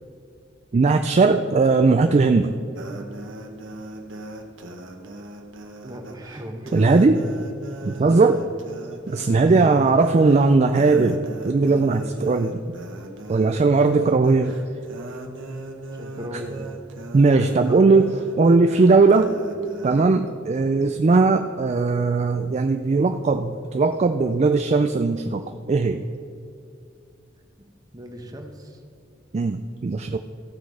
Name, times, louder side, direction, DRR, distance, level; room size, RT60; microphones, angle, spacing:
voice 1, 0.7-2.5 6.7-7.2 7.8-8.4 9.1-12.6 13.3-14.6 17.1-19.3 19.8-25.4 25.7-26.0 29.3-30.2, right 3 dB, 35° right, 6 dB, 0.3 m, -18 dB
sound 1, 2.7-20.0, right 2 dB, 80° right, 1.1 m, -38 dB
voice 2, 5.8-7.2 7.9-8.2 9.4-9.8 15.9-16.8 17.3-17.9 20.8-21.0 27.9-28.8, equal, 20° right, 3 dB, 1.1 m, -36 dB
16.0 x 6.1 x 4.8 m, 2.4 s
head